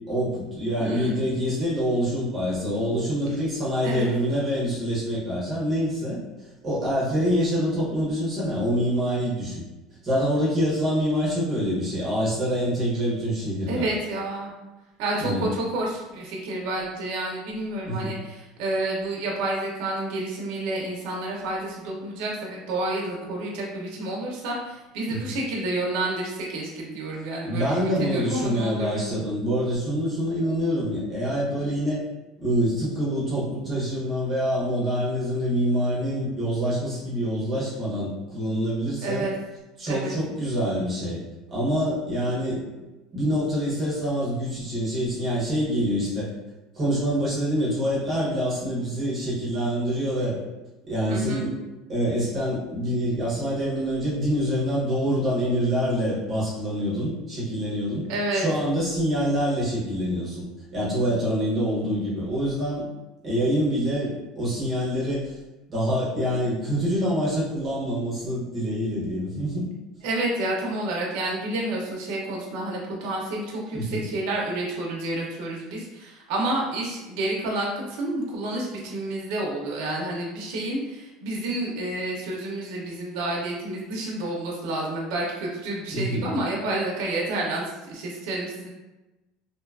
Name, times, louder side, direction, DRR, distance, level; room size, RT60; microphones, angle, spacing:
voice 1, 0.1-6.2 6.6-9.6 10.0-13.9 15.2-15.5 17.8-18.1 25.1-25.3 27.4-32.0 32.4-39.3 39.8-41.2 41.5-42.6 43.1-46.3 46.7-50.4 50.9-51.5 51.9-60.4 60.7-62.8 63.2-65.3 65.7-69.7 73.7-74.1 85.9-86.3, equal, 20° right, -7 dB, 0.7 m, -26 dB
voice 2, 0.8-1.2 3.8-4.1 13.7-14.5 15.0-29.2 39.0-39.3 39.9-40.1 51.1-51.4 58.1-58.5 70.0-88.7, right 1 dB, 65° right, -2 dB, 0.5 m, -29 dB
2.6 x 2.2 x 2.3 m, 1.1 s
cardioid pair, 165°, 0 cm